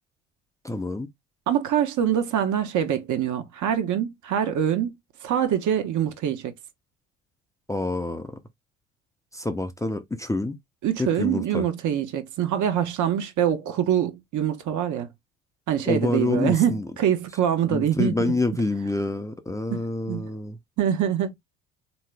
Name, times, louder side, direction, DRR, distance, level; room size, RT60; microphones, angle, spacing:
voice 1, 0.6-1.1 7.7-8.4 9.3-10.6 11.0-11.6 15.9-16.9 17.7-20.6, left 2 dB, 10° left, 0.6 m, -27 dB
voice 2, 1.5-4.9 5.2-6.5 10.8-15.1 15.7-18.3 19.7-19.8 20.1-20.3 20.8-21.4, right 9 dB, 50° right, 1.1 m, -24 dB
3.7 x 3.0 x 3.3 m
hypercardioid pair, 65°, 38 cm